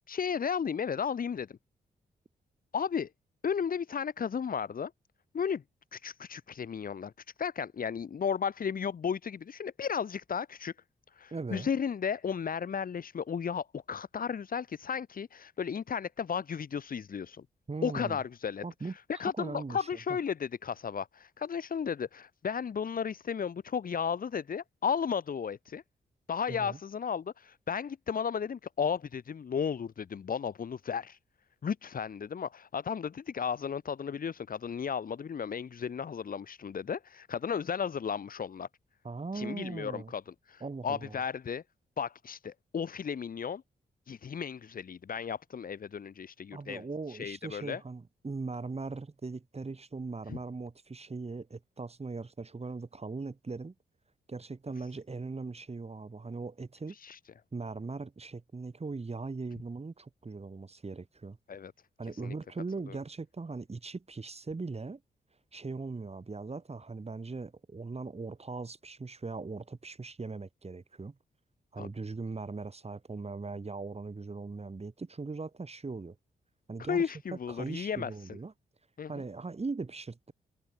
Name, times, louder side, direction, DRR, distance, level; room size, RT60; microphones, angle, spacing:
voice 1, 0.1-1.6 2.7-3.1 3.4-4.9 5.3-5.6 5.9-7.1 7.4-10.7 11.1-17.4 17.8-25.8 26.3-31.2 31.6-38.7 39.3-41.6 42.0-43.6 44.1-47.8 50.3-50.4 56.9-57.2 61.5-61.7 62.1-62.3 62.9-63.0 71.8-71.9 76.9-78.4 79.0-79.1, left 7 dB, 50° left, 1.0 m, -34 dB
voice 2, 11.3-11.7 17.7-18.2 18.6-18.9 19.3-20.2 26.5-26.8 39.0-40.1 40.6-41.2 46.5-53.7 54.3-57.0 57.5-61.4 62.0-65.0 65.5-71.2 71.7-76.2 76.7-77.0 77.5-78.5 79.1-80.3, right 3 dB, 35° right, 3.9 m, -39 dB
supercardioid pair, 50°, 18 cm